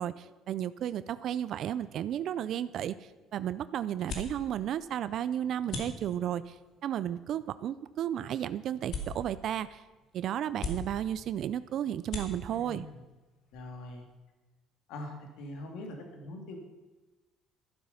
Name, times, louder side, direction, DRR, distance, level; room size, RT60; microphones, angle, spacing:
voice 1, 0.0-9.8 10.1-12.9, right 10 dB, 50° right, 14 dB, 0.4 m, -33 dB
mechero varios stereo, 2.6-14.2, left 2 dB, 50° left, 2.4 m, -45 dB
voice 2, 12.6-13.0 13.5-14.1 14.9-16.6, left 1 dB, 70° left, 3 dB, 2.5 m, -42 dB
12.5 x 11.5 x 5.6 m, 1.2 s
cardioid pair, 160°, 0 cm